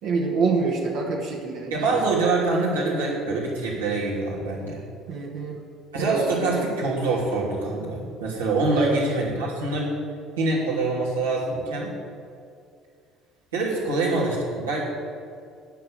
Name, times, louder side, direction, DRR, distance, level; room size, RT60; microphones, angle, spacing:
voice 1, 0.0-2.1 5.1-5.6 6.0-6.7 8.7-9.0, right 4 dB, 60° right, -2 dB, 1.5 m, -26 dB
voice 2, 1.7-4.8 5.9-9.9 10.4-11.9 13.5-14.8, right 3 dB, 80° right, -5 dB, 2.8 m, -25 dB
9.9 x 6.6 x 7.9 m, 2.4 s
figure-of-eight pair, 55°, 0 cm